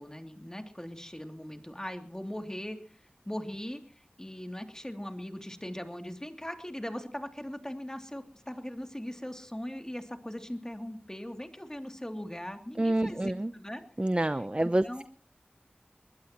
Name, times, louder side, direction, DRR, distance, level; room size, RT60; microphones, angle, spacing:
voice 1, 0.0-13.8 14.8-15.0, equal, 15° left, 5 dB, 2.9 m, -40 dB
voice 2, 12.8-13.5 14.0-15.0, right 1 dB, 30° right, 12 dB, 0.7 m, -28 dB
22.5 x 21.0 x 3.0 m, 0.40 s
wide cardioid pair, 45°, 3 cm